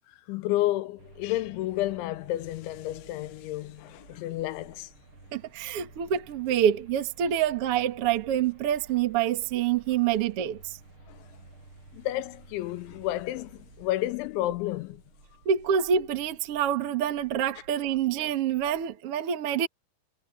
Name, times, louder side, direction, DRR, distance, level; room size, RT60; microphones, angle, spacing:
voice 1, 0.3-4.9 11.1-11.2 11.9-15.0, left 15 dB, 85° left, 3.0 m, -31 dB
sound 1, 1.0-19.0, right 2 dB, 25° right, 7.5 m, -53 dB
voice 2, 5.3-10.8 15.4-19.7, right 9 dB, 85° right, 1.3 m, -26 dB
omnidirectional pair, 5.5 m